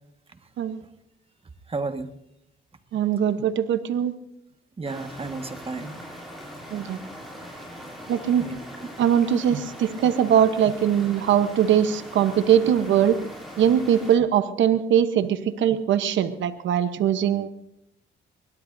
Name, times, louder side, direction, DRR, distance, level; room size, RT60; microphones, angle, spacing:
voice 1, 1.7-2.1 4.8-6.0 8.4-8.9, right 3 dB, 30° right, 7 dB, 1.6 m, -33 dB
voice 2, 2.9-4.1 6.7-7.0 8.1-8.4 9.0-13.2 13.6-17.5, right 9 dB, 70° right, 11 dB, 1.0 m, -21 dB
sound 1, 4.8-14.1, equal, ahead, 7.9 m, -41 dB
23.5 x 20.0 x 2.7 m, 0.79 s
cardioid pair, 90°, 20 cm